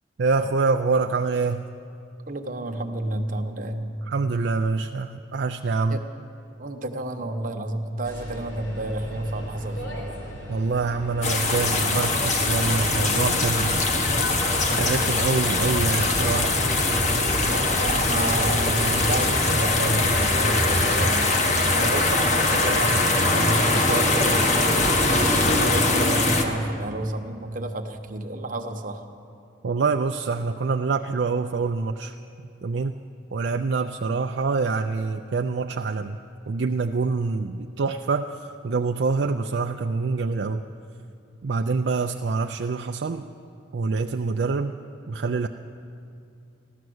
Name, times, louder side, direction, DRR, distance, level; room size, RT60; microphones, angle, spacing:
voice 1, 0.2-1.7 4.1-6.0 10.5-13.8 14.1-16.5 29.6-32.1 32.6-32.9 33.3-36.2 36.5-38.3 38.6-40.6 41.4-43.3 43.7-44.7 45.1-45.5, right 4 dB, 65° right, 5 dB, 0.4 m, -25 dB
voice 2, 2.3-3.9 5.9-6.0 6.6-10.2 17.4-29.0, right 1 dB, 45° right, 5 dB, 1.0 m, -30 dB
sound 1, 8.0-21.2, equal, 80° left, 3.6 m, -40 dB
sound 2, 11.2-26.4, left 2 dB, 40° left, 1.2 m, -22 dB
15.0 x 12.0 x 7.8 m, 2.5 s
head